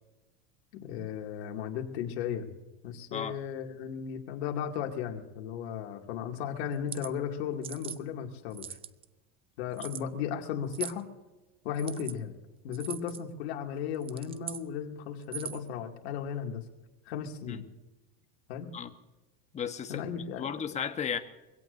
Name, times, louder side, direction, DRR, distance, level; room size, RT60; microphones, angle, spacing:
voice 1, 0.8-2.5 2.8-8.7 9.6-11.1 11.6-12.3 12.6-16.6 17.1-17.6 18.5-18.7 19.9-20.5, left 8 dB, 80° left, 2 dB, 2.5 m, -35 dB
sound 1, 6.7-7.1 7.6-8.0 8.5-9.0 9.8-10.0 10.7-11.0 11.7-12.2 12.7-13.2 13.9-14.6 15.2-15.7, right 9 dB, 20° right, 0.4 m, -40 dB
voice 2, 19.5-20.0 20.4-21.2, left 7 dB, 20° left, 7 dB, 1.2 m, -34 dB
24.0 x 17.0 x 2.7 m, 1.1 s
supercardioid pair, 145°, 32 cm